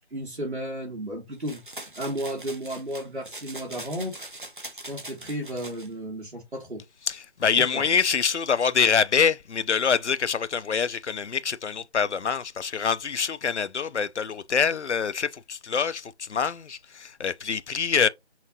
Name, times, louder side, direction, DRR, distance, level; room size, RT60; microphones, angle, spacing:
voice 1, 0.1-1.6 2.0-4.2 4.9-6.8 7.5-7.9, equal, 70° right, 1.8 m, -33 dB
sound 1, 1.4-5.9, right 2 dB, 45° right, 0.9 m, -42 dB
voice 2, 7.1-18.1, left 6 dB, 80° left, 0.5 m, -25 dB
5.7 x 2.6 x 2.7 m
figure-of-eight pair, 175°, 34 cm